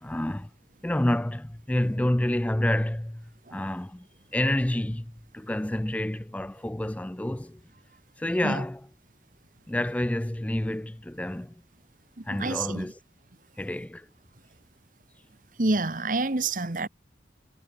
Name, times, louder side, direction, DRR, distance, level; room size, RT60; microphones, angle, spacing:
voice 1, 0.0-0.5 0.8-4.1 4.3-7.6 8.2-8.8 9.7-11.5 12.2-12.9 13.6-14.1, left 1 dB, 10° left, 0.4 m, -28 dB
voice 2, 12.2-12.9 15.6-16.9, right 3 dB, 50° right, 1.2 m, -28 dB
head